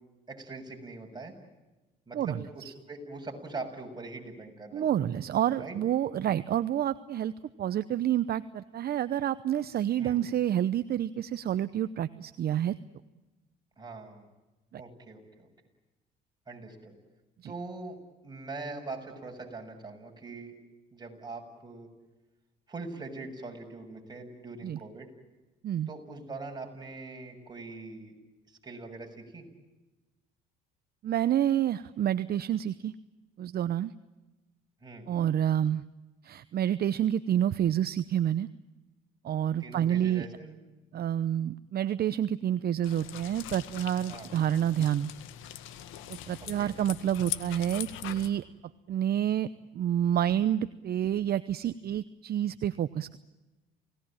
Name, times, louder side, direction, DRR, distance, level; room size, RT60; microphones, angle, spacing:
voice 1, 0.3-1.3 2.1-5.0 5.6-5.8 10.0-10.2 13.8-14.3 14.8-15.5 16.5-16.9 17.4-18.0 18.2-20.5 20.9-21.9 22.7-25.1 25.9-28.1 28.5-29.5 34.8-35.1 39.6-40.6 44.1-44.3 46.6-46.7, right 3 dB, 20° right, 2 dB, 7.2 m, -42 dB
voice 2, 4.7-7.3 7.6-12.7 14.7-14.8 17.4-17.5 24.6-24.8 25.6-25.9 31.0-32.9 33.4-33.9 35.1-35.8 36.2-38.5 39.2-40.3 40.9-45.1 46.3-48.4 48.9-49.5 49.7-53.2, right 10 dB, 50° right, 13 dB, 0.8 m, -28 dB
sound 1, 42.8-48.3, left 11 dB, 70° left, 1.9 m, -41 dB
29.0 x 18.5 x 8.9 m, 1.1 s
supercardioid pair, 80°, 21 cm